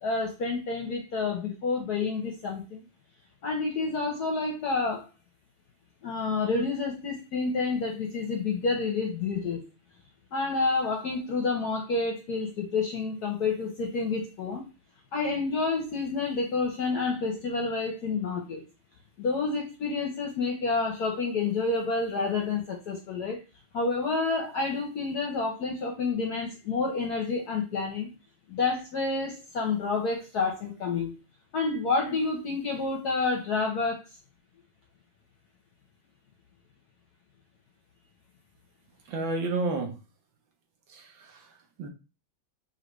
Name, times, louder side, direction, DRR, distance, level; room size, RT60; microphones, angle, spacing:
voice 1, 0.0-2.8 3.4-5.1 6.0-9.6 10.3-14.6 15.1-18.6 19.2-23.4 23.7-28.1 28.5-31.1 31.5-34.0, left 4 dB, 60° left, 1 dB, 1.0 m, -29 dB
voice 2, 39.1-40.0 40.9-41.9, right 3 dB, 70° right, 3 dB, 1.5 m, -32 dB
5.6 x 2.8 x 3.0 m, 0.31 s
omnidirectional pair, 2.4 m